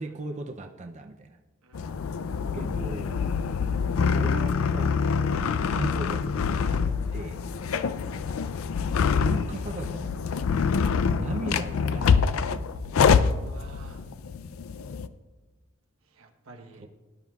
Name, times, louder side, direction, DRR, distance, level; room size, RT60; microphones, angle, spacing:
voice 1, 0.0-1.4 2.5-3.2 4.1-5.2 5.7-7.4 9.1-10.5 11.1-12.6 16.8-16.9, right 2 dB, 35° right, 4 dB, 0.5 m, -37 dB
voice 2, 1.6-2.2 8.0-8.3 13.4-14.1 16.1-16.9, right 3 dB, 85° right, 4 dB, 1.1 m, -51 dB
sound 1, 1.8-15.1, left 6 dB, 80° left, 0.4 m, -25 dB
18.5 x 11.0 x 2.4 m, 1.3 s
head